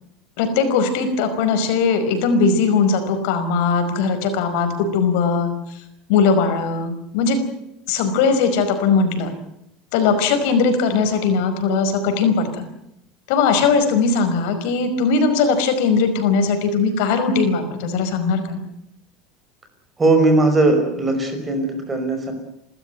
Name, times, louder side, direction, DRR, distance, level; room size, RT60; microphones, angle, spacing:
voice 1, 0.4-5.8 6.1-7.4 7.9-9.3 9.9-12.7 13.3-18.6, left 5 dB, 70° left, 7 dB, 5.2 m, -19 dB
voice 2, 20.0-22.3, right 2 dB, 15° right, 6 dB, 5.5 m, -18 dB
30.0 x 14.0 x 9.3 m, 0.78 s
supercardioid pair, 150°, 0 cm